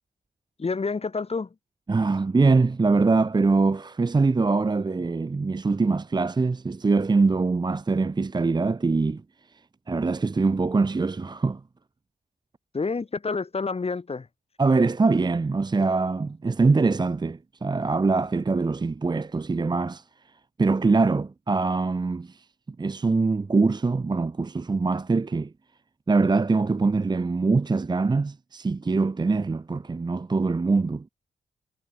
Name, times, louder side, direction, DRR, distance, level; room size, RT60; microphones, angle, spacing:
voice 1, 0.6-1.5 12.7-14.3, left 4 dB, 35° left, 5.1 m, -28 dB
voice 2, 1.9-9.2 9.9-11.6 14.6-20.0 20.6-22.4 22.8-25.5 26.1-31.1, right 3 dB, 25° right, 0.8 m, -23 dB
wide cardioid pair, 105°, 17 cm